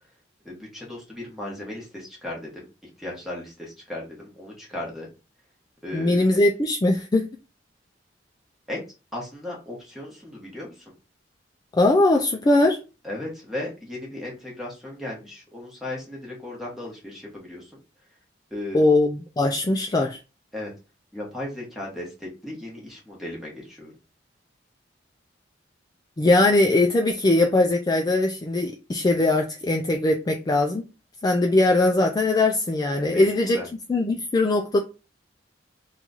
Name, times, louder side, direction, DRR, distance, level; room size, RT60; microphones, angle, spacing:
voice 1, 0.4-2.7 3.0-5.1 5.8-6.2 8.7-8.8 9.1-10.8 13.0-17.7 18.5-18.8 20.5-20.7 21.1-23.9 33.1-33.7, left 1 dB, ahead, 1.1 m, -36 dB
voice 2, 5.9-7.3 11.7-12.8 18.7-20.2 26.2-30.8 31.2-33.6 33.9-34.8, left 2 dB, 20° left, 0.3 m, -20 dB
3.0 x 2.4 x 3.9 m
head